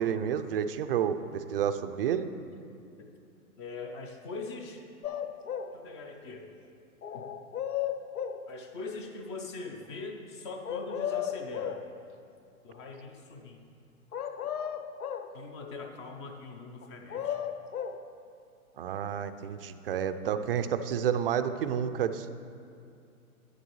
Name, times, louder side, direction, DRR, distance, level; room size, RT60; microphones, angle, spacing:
voice 1, 0.0-2.3 18.8-22.3, right 8 dB, 45° right, 10 dB, 0.4 m, -30 dB
voice 2, 3.6-4.9 5.7-6.5 7.1-7.3 8.5-11.8 12.6-13.6 15.3-17.4, left 3 dB, 20° left, 4 dB, 0.4 m, -41 dB
sound 1, 5.0-5.7 7.0-8.4 10.6-11.8 14.1-15.3 16.8-18.0, left 9 dB, 90° left, 0.6 m, -34 dB
11.0 x 9.5 x 3.1 m, 2.4 s
hypercardioid pair, 125°, 43 cm